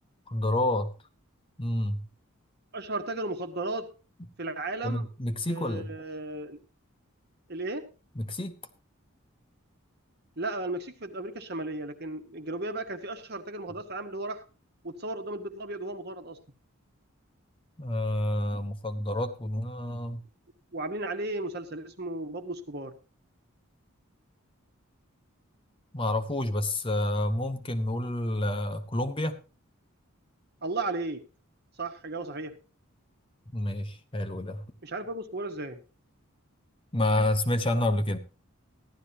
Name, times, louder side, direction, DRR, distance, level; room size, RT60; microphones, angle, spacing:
voice 1, 0.3-0.9 1.6-2.1 4.8-5.9 8.2-8.6 17.8-20.2 25.9-29.4 33.5-34.6 36.9-38.2, left 1 dB, 25° left, 8 dB, 0.9 m, -29 dB
voice 2, 2.7-3.9 4.4-5.1 5.5-6.6 7.5-7.8 10.4-14.4 14.8-16.4 20.7-22.9 30.6-31.2 31.8-32.5 34.8-35.8, right 2 dB, 50° right, 7 dB, 1.4 m, -35 dB
15.0 x 11.5 x 2.9 m, 0.32 s
head